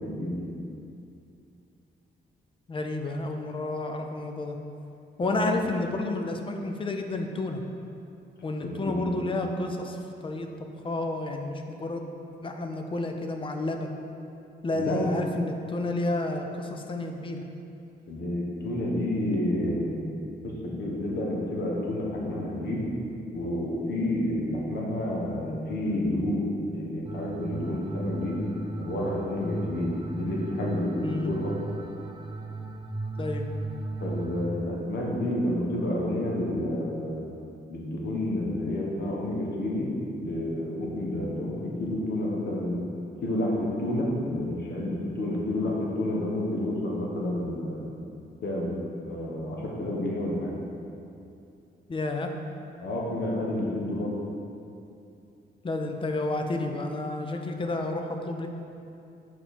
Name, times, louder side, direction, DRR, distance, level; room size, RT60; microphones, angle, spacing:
voice 1, 0.0-0.5 5.2-5.5 8.6-9.1 14.7-15.1 18.1-22.8 23.3-28.4 28.8-31.7 34.0-39.9 40.2-42.8 43.2-47.9 48.4-50.5 52.8-54.1, left 1 dB, 70° left, -3 dB, 1.2 m, -30 dB
voice 2, 2.7-4.6 5.2-7.6 8.4-10.5 10.8-13.9 14.6-17.4 31.0-31.3 33.2-33.5 51.9-52.3 55.6-58.5, left 2 dB, 30° left, 4 dB, 0.5 m, -31 dB
sound 1, 27.0-34.5, right 2 dB, 25° right, 0.4 m, -36 dB
7.1 x 4.3 x 4.3 m, 2.6 s
wide cardioid pair, 145°, 18 cm